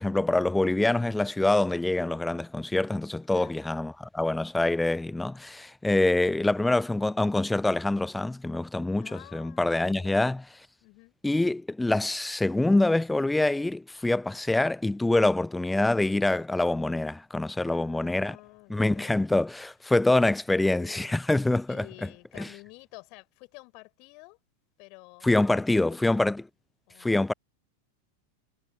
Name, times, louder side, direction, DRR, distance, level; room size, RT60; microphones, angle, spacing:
voice 1, 0.0-10.4 11.2-18.4 18.7-21.9 22.4-22.5 25.2-26.4 27.0-27.3, left 2 dB, 5° left, 0.5 m, -25 dB
voice 2, 3.3-3.7 6.3-6.6 9.0-10.2 10.8-11.1 17.6-19.2 20.5-21.2 21.7-24.4 24.8-26.2 26.9-27.2, left 31 dB, 45° left, 6.1 m, -50 dB
figure-of-eight pair, 90°, 0 cm